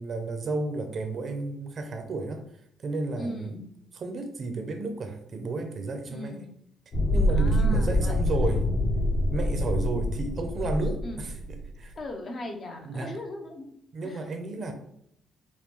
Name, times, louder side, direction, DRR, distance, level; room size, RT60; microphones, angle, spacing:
voice 1, 0.0-2.4 2.8-3.6 3.9-6.4 7.1-8.7 9.3-11.4 11.8-11.9 12.9-13.2 13.9-14.7, right 3 dB, 45° right, 6 dB, 0.6 m, -32 dB
voice 2, 3.2-3.7 6.1-6.5 7.3-8.5 11.0-11.3 12.0-13.7 14.0-14.2 14.6-14.7, left 1 dB, 40° left, 3 dB, 0.7 m, -38 dB
sound 1, 6.9-11.7, left 1 dB, 65° left, 1.3 m, -26 dB
5.5 x 2.2 x 3.1 m, 0.72 s
cardioid pair, 105°, 0 cm